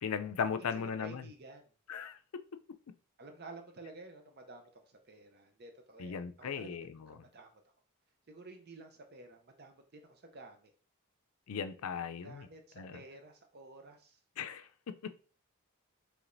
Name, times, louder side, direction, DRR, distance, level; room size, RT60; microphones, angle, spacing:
voice 1, 0.0-1.3 1.9-2.2 6.0-7.2 11.5-12.5 12.8-13.0 14.4-15.1, left 6 dB, 80° left, 0.4 m, -37 dB
voice 2, 0.7-1.7 3.2-7.5 8.3-10.7 12.2-14.2, right 2 dB, 45° right, 0.6 m, -52 dB
4.8 x 3.2 x 2.6 m
head